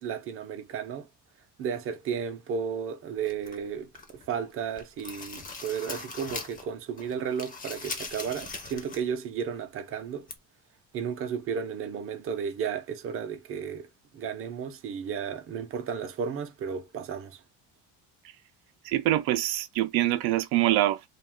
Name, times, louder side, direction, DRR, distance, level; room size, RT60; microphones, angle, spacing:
voice 1, 0.0-1.1 1.6-10.3 10.9-13.9 14.1-17.4, right 7 dB, 40° right, 0.5 m, -33 dB
sound 1, 3.2-4.3 4.6-6.7 7.0-9.1 9.4-9.5 10.3-10.4, left 3 dB, 25° left, 0.6 m, -40 dB
voice 2, 18.8-21.1, right 15 dB, 85° right, 0.5 m, -25 dB
2.4 x 2.3 x 3.4 m
cardioid pair, 140°, 35 cm